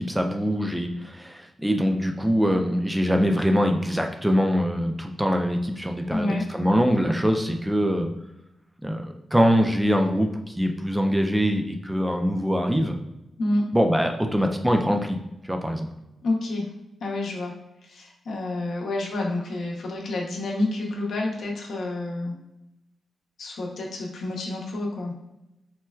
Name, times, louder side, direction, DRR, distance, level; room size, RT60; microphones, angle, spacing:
voice 1, 0.0-8.1 8.8-13.0 13.7-15.2 15.4-15.9, equal, 10° right, 4 dB, 0.3 m, -23 dB
voice 2, 6.1-6.4 13.4-13.6 16.2-16.7 17.0-17.5 17.9-22.3 23.4-25.1, left 2 dB, 75° left, -1 dB, 0.6 m, -28 dB
4.3 x 2.2 x 2.2 m, 0.90 s
cardioid pair, 100°, 0 cm